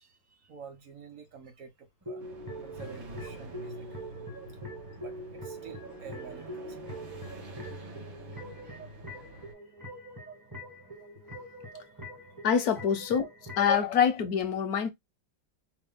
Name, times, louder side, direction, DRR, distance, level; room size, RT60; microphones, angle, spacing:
voice 1, 0.0-2.3 2.6-3.9 5.0-6.8, right 6 dB, 65° right, 0.8 m, -48 dB
sound 1, 2.0-13.8, equal, 30° right, 0.4 m, -44 dB
sound 2, 2.2-9.5, right 2 dB, 80° right, 2.7 m, -46 dB
voice 2, 12.4-13.3 13.6-14.9, left 7 dB, 70° left, 0.9 m, -25 dB
4.8 x 2.0 x 3.4 m
omnidirectional pair, 2.1 m